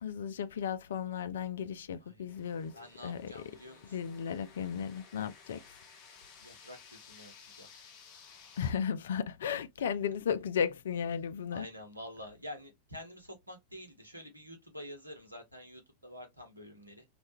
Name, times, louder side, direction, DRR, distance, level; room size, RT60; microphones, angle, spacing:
voice 1, 0.0-2.7 3.0-3.3 3.9-5.6 8.6-11.7, left 7 dB, 60° left, 0.3 m, -34 dB
voice 2, 2.0-4.1 6.4-7.7 11.5-17.1, left 1 dB, 85° right, 0.8 m, -48 dB
sound 1, 2.3-8.7, left 6 dB, 40° left, 0.7 m, -56 dB
2.3 x 2.2 x 2.6 m
figure-of-eight pair, 90°, 0 cm